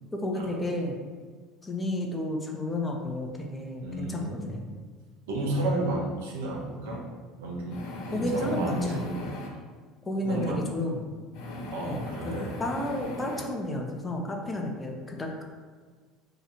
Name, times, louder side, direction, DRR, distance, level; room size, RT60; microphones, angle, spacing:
voice 1, 0.1-1.0 1.6-4.7 8.1-9.0 10.0-11.1 11.8-15.4, left 1 dB, 20° left, 1 dB, 0.6 m, -32 dB
voice 2, 3.8-4.5 5.3-7.0 7.4-9.3 10.3-10.6 11.7-12.5, right 2 dB, 85° right, -2 dB, 0.7 m, -32 dB
sound 1, 6.8-7.0 7.7-9.5 10.2-10.6 11.3-13.4, left 2 dB, 70° left, 0.5 m, -39 dB
2.8 x 2.4 x 4.2 m, 1.5 s
hypercardioid pair, 85°, 0 cm